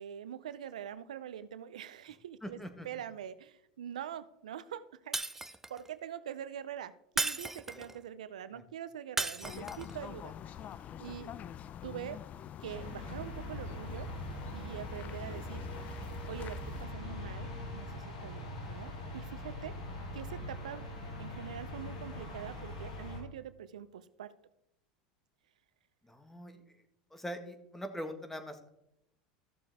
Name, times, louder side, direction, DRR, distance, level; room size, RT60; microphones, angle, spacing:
voice 1, 0.0-5.2 5.4-10.3 11.0-11.3 11.8-12.2 12.6-14.1 14.5-15.7 16.3-19.8 20.1-20.8 21.2-24.3, right 9 dB, 90° right, 14 dB, 0.5 m, -44 dB
voice 2, 2.4-2.9 7.7-7.8 26.1-26.6 27.1-28.7, equal, 5° left, 7 dB, 1.6 m, -42 dB
Shatter, 5.1-5.9 7.2-8.0 9.2-10.0, right 2 dB, 10° right, 0.6 m, -35 dB
sound 1, 9.4-16.9, left 9 dB, 40° left, 0.5 m, -46 dB
sound 2, 12.7-23.2, left 1 dB, 90° left, 3.0 m, -42 dB
14.0 x 6.9 x 3.5 m, 0.81 s
hypercardioid pair, 95°, 4 cm